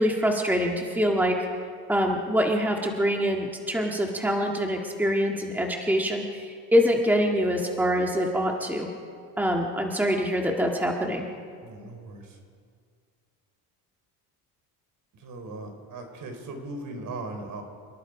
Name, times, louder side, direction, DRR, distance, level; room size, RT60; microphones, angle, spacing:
voice 1, 0.0-1.4 1.9-8.9 9.4-11.3, equal, 5° right, 1 dB, 1.9 m, -25 dB
voice 2, 11.6-12.4 15.1-17.6, right 2 dB, 55° right, 5 dB, 4.3 m, -38 dB
28.5 x 18.5 x 5.0 m, 2.1 s
cardioid pair, 115°, 40 cm